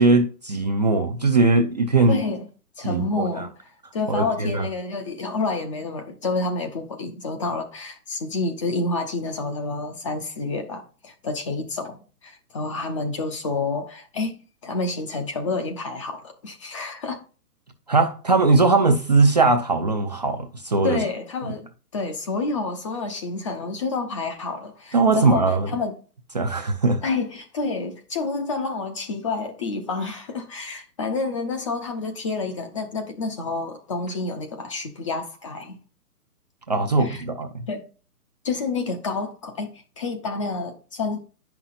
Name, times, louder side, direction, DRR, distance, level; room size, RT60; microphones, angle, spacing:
voice 1, 0.0-2.2 2.8-3.2 4.1-4.6 17.9-21.0 24.9-25.7 26.3-27.0 36.7-37.6, right 3 dB, 30° right, 0.4 m, -20 dB
voice 2, 2.1-2.5 2.8-17.2 20.8-25.9 27.0-35.8 37.0-37.2 37.7-37.8 38.4-41.2, left 3 dB, 20° left, 0.5 m, -29 dB
9.0 x 5.8 x 2.5 m
hypercardioid pair, 140°, 45 cm